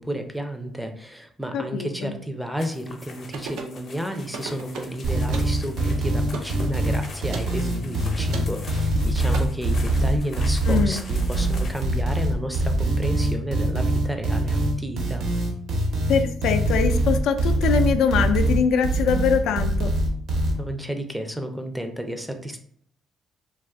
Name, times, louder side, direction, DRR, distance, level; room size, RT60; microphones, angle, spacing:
voice 1, 0.0-15.3 20.6-22.6, equal, 5° right, 5 dB, 0.4 m, -32 dB
voice 2, 1.5-2.1 10.7-11.0 16.1-19.9, left 6 dB, 80° left, 7 dB, 0.3 m, -23 dB
sound 1, 2.6-11.9, left 3 dB, 50° left, 0.6 m, -43 dB
sound 2, 3.3-3.8 4.3-5.0 5.3-5.6 6.3-6.5 7.3-7.5 8.3-8.5 9.3-9.4, right 5 dB, 85° right, 0.5 m, -35 dB
sound 3, 5.0-20.5, right 1 dB, 65° right, 0.9 m, -23 dB
2.4 x 2.3 x 3.5 m, 0.64 s
cardioid pair, 95°, 0 cm